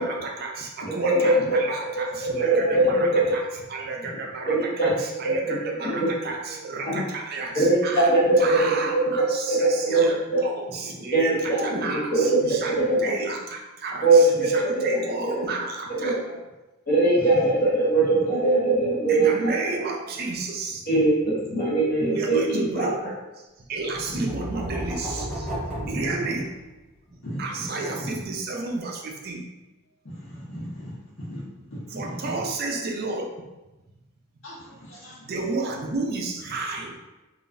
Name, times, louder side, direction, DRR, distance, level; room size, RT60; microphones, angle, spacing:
voice 1, 0.0-8.1 8.4-16.2 19.1-21.3 21.8-23.0 23.4-26.5 27.1-29.5 31.9-33.3 35.2-36.9, right 3 dB, 45° right, 0 dB, 0.4 m, -32 dB
voice 2, 0.9-1.3 2.4-3.3 4.5-4.9 5.2-5.5 5.8-6.1 6.9-7.0 7.5-9.0 9.5-10.1 10.3-10.4 11.1-11.8 12.1-12.3 12.9-13.1 14.0-15.0 16.0-16.2 16.9-19.5 20.9-22.9, right 2 dB, 45° left, -6 dB, 1.0 m, -21 dB
sound 1, 23.9-26.8, right 1 dB, ahead, 1.1 m, -33 dB
voice 3, 25.8-26.3 27.2-27.7 30.0-30.9 31.3-31.4 31.9-32.1 34.4-35.1, equal, 70° left, -7 dB, 1.3 m, -36 dB
3.7 x 2.5 x 2.6 m, 1.1 s
head